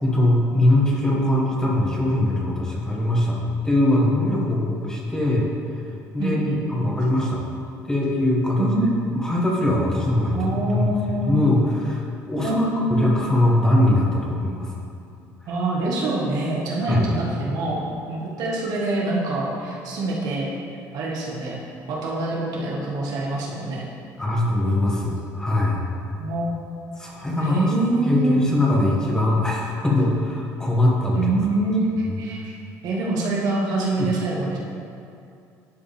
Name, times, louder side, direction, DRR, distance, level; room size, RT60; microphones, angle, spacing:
voice 1, 0.0-5.5 6.1-7.5 7.8-8.7 9.1-14.8 16.9-17.0 24.2-25.8 27.0-27.6 28.1-31.3 32.0-32.1 34.0-34.1, left 1 dB, 10° left, -3 dB, 1.3 m, -21 dB
voice 2, 6.2-6.9 8.6-9.0 10.3-11.4 12.4-13.2 15.5-20.5 20.9-21.6 21.9-23.8 26.2-26.5 27.4-28.4 31.1-32.5 32.8-34.6, right 2 dB, 70° right, -3 dB, 1.7 m, -25 dB
11.0 x 5.0 x 3.6 m, 2.5 s
cardioid pair, 115°, 7 cm